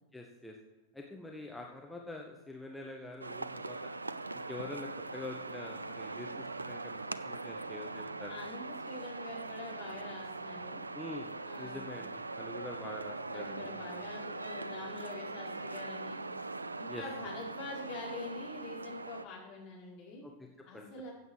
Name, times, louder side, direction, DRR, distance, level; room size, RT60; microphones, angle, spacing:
voice 1, 0.1-0.5 0.9-3.9 4.5-8.3 10.9-14.0 16.9-17.0 20.2-20.5 20.7-20.9, left 2 dB, 5° left, 0 dB, 1.3 m, -45 dB
sound 1, 3.2-19.3, right 3 dB, 80° right, 0.4 m, -41 dB
voice 2, 8.3-10.8 11.4-12.0 13.3-16.2 16.8-20.2 20.6-21.1, left 3 dB, 40° left, -4 dB, 5.0 m, -45 dB
15.5 x 8.0 x 4.8 m, 1.2 s
figure-of-eight pair, 90°, 0 cm